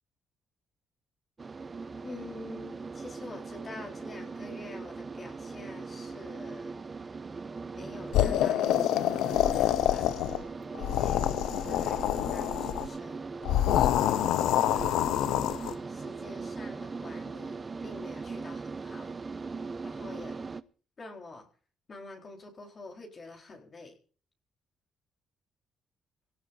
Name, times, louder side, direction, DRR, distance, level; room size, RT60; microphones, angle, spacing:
sound 1, 1.4-20.6, right 4 dB, 30° right, 0.8 m, -40 dB
voice 1, 2.0-6.8 7.7-10.1 10.7-13.3 13.7-15.2 15.9-19.1 19.8-20.5 21.0-21.5 21.9-24.0, left 2 dB, 40° left, 2 dB, 4.2 m, -47 dB
sound 2, 8.1-10.4 10.7-12.9 13.4-15.7, left 12 dB, 90° left, 0.6 m, -26 dB
23.0 x 18.0 x 2.7 m, 0.41 s
cardioid pair, 90°, 0 cm